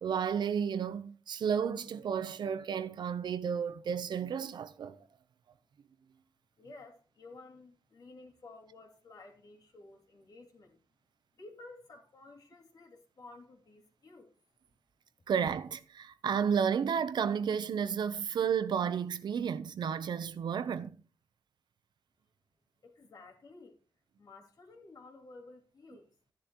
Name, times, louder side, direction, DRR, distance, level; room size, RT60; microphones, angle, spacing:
voice 1, 0.0-5.1 15.3-21.0, right 7 dB, 80° right, 0.7 m, -32 dB
voice 2, 6.6-10.8 11.4-14.3 22.8-23.8 24.2-26.1, left 3 dB, 60° left, 2.8 m, -53 dB
14.0 x 10.5 x 3.0 m
wide cardioid pair, 130°, 7 cm